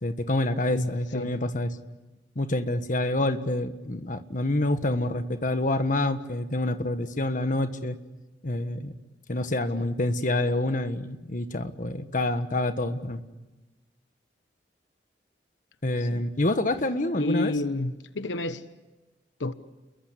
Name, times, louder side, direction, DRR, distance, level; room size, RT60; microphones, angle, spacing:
voice 1, 0.0-1.7 2.3-8.0 8.4-8.9 9.3-13.2 15.8-17.5, left 1 dB, 45° left, 1.5 m, -27 dB
voice 2, 0.7-1.4 9.8-9.9 16.0-16.2 17.1-18.7 19.4-19.5, left 2 dB, 90° left, 1.2 m, -30 dB
30.0 x 22.5 x 8.3 m
head